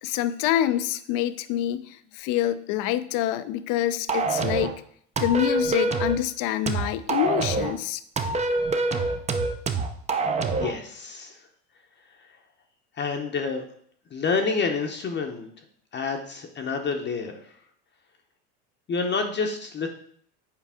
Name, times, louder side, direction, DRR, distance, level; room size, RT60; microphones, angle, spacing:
voice 1, 0.0-4.8 5.2-8.0, left 12 dB, 55° left, 13 dB, 0.6 m, -26 dB
sound 1, 4.1-4.7 5.2-6.2 6.7-7.7 8.2-10.7, right 3 dB, 20° right, 0.6 m, -25 dB
voice 2, 10.6-11.4 13.0-13.6 14.1-15.5 15.9-17.4 18.9-19.9, left 4 dB, 30° left, 3 dB, 0.8 m, -28 dB
7.5 x 4.7 x 3.6 m, 0.63 s
supercardioid pair, 100°, 38 cm